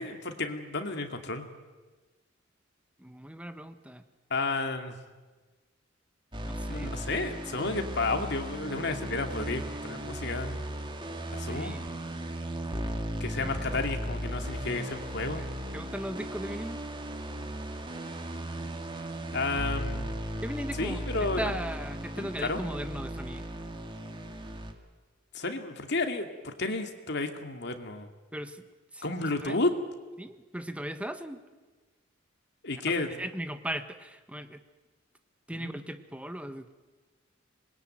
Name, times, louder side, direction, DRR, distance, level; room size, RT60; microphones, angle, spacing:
voice 1, 0.0-1.5 4.3-5.0 6.6-10.6 11.3-11.8 13.2-15.4 19.3-20.1 20.8-21.5 22.2-22.6 25.3-28.1 29.0-29.7 32.6-33.2 35.5-35.8, left 3 dB, 60° left, 5 dB, 2.5 m, -32 dB
voice 2, 3.0-4.0 6.4-7.0 11.4-11.8 15.3-15.5 15.7-16.8 20.4-21.0 21.4-23.4 28.3-28.6 28.9-29.0 29.3-29.6 30.2-31.4 32.8-34.6 35.5-36.7, equal, 5° right, 9 dB, 1.3 m, -38 dB
sound 1, 6.3-24.7, equal, 25° right, 2.2 m, -36 dB
26.0 x 21.5 x 9.1 m, 1.3 s
head